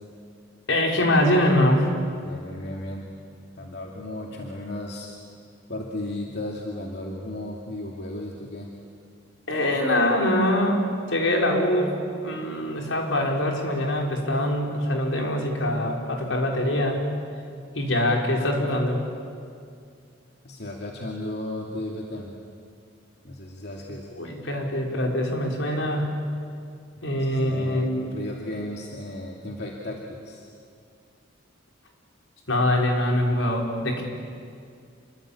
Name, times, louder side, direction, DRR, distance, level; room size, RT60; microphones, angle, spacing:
voice 1, 0.7-1.9 9.5-11.9 12.2-17.0 17.7-19.0 24.1-26.2 27.0-28.1 32.5-34.0, left 1 dB, 80° left, 1 dB, 4.9 m, -23 dB
voice 2, 2.2-3.1 3.5-5.1 5.7-8.7 20.4-22.3 23.2-24.1 27.2-30.5, left 1 dB, 60° left, -1 dB, 2.6 m, -35 dB
28.0 x 23.0 x 8.7 m, 2.3 s
head